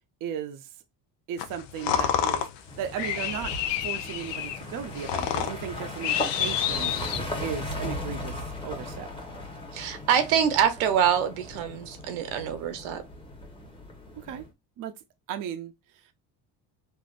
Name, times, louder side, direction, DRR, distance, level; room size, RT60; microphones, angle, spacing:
voice 1, 0.2-0.7 1.3-2.5 2.8-3.5 3.8-6.9 7.4-9.1 14.2-14.5 14.8-14.9 15.3-15.7, right 9 dB, 45° right, 0.5 m, -36 dB
sound 1, 1.4-7.6, left 10 dB, 65° left, 0.6 m, -29 dB
sound 2, 2.7-14.5, left 1 dB, 10° left, 1.0 m, -38 dB
voice 2, 9.7-13.0, right 8 dB, 85° right, 0.9 m, -25 dB
3.4 x 2.5 x 2.4 m
cardioid pair, 105°, 47 cm